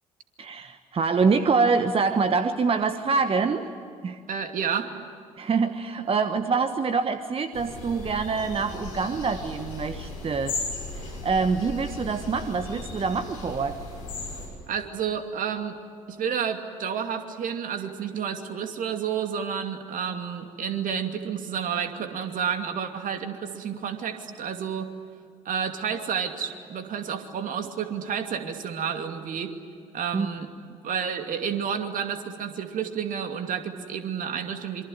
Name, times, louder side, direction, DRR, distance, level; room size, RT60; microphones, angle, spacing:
voice 1, 0.4-3.7 4.0-4.2 5.4-13.8 30.1-30.3, right 4 dB, 30° right, 9 dB, 1.3 m, -25 dB
voice 2, 4.3-4.9 14.7-15.8 16.1-24.9 25.4-29.5 29.9-30.5 30.8-34.8, right 7 dB, 50° right, 6 dB, 2.6 m, -30 dB
sound 1, 7.5-14.5, left 3 dB, 75° left, 6.5 m, -36 dB
27.0 x 23.5 x 9.2 m, 2.3 s
figure-of-eight pair, 55°, 18 cm